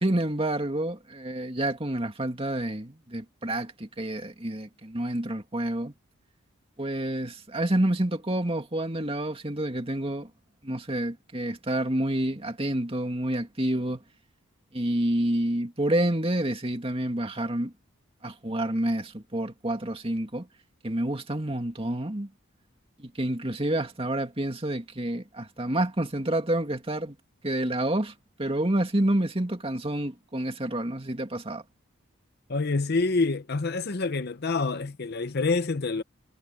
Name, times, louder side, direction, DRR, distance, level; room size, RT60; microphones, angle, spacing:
voice 1, 0.0-5.9 6.8-10.3 10.6-14.0 14.7-17.7 18.2-20.5 20.8-22.3 23.0-27.2 27.4-28.1 28.4-31.6, right 1 dB, 25° right, 2.3 m, -28 dB
voice 2, 32.5-36.0, left 3 dB, 50° left, 0.7 m, -27 dB
head